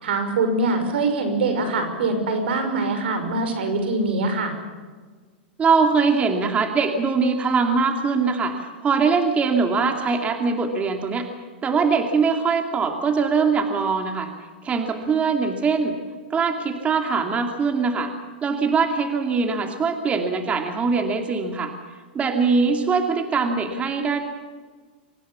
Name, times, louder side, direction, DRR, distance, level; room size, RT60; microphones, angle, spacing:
voice 1, 0.0-4.5, right 3 dB, 75° right, 7 dB, 5.8 m, -23 dB
voice 2, 5.6-11.3 11.6-14.3 14.6-16.0 16.3-18.1 18.4-21.7 22.1-24.2, right 5 dB, 20° right, 5 dB, 2.5 m, -22 dB
25.0 x 18.0 x 7.1 m, 1.5 s
hypercardioid pair, 120°, 6 cm